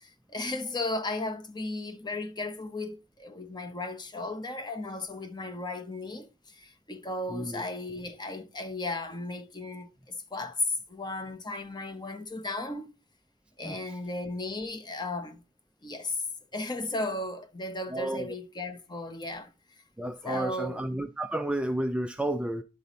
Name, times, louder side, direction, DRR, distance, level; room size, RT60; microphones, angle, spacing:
voice 1, 0.0-12.9 13.6-15.4 15.8-16.2 16.5-19.8 20.2-20.9, left 2 dB, 20° left, 0.8 m, -35 dB
voice 2, 7.3-7.6 13.6-14.0 17.9-18.3 20.0-22.6, right 1 dB, 5° right, 0.3 m, -31 dB
11.0 x 4.1 x 3.9 m
head